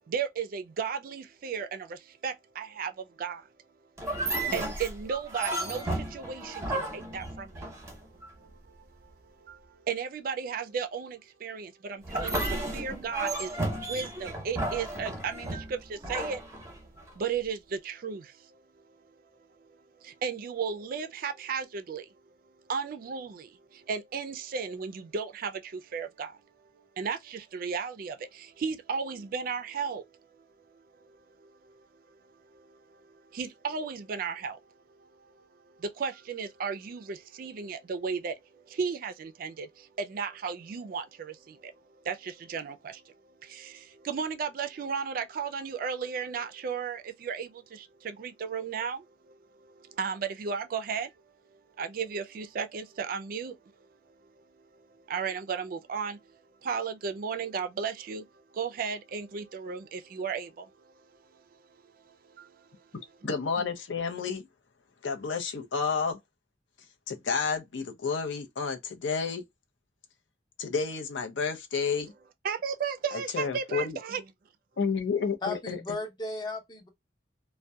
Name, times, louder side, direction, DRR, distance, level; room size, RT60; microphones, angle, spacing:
voice 1, 0.1-3.5 4.2-7.7 8.1-16.8 17.2-19.0 19.6-22.1 22.7-26.4 27.0-30.0 30.4-30.5 30.7-34.6 34.9-51.1 51.5-53.6 53.8-53.9 54.2-54.4 54.7-62.8 72.4-74.2, right 6 dB, 50° right, 0.3 m, -35 dB
sound 1, 4.0-8.3 12.0-17.1, right 1 dB, 15° right, 0.7 m, -33 dB
voice 2, 63.2-64.5 65.0-66.2 67.1-69.4 70.6-72.1 73.1-74.0 74.8-76.0, left 5 dB, 85° left, 0.6 m, -30 dB
voice 3, 75.4-76.9, left 2 dB, 25° left, 0.6 m, -35 dB
2.7 x 2.1 x 2.2 m
head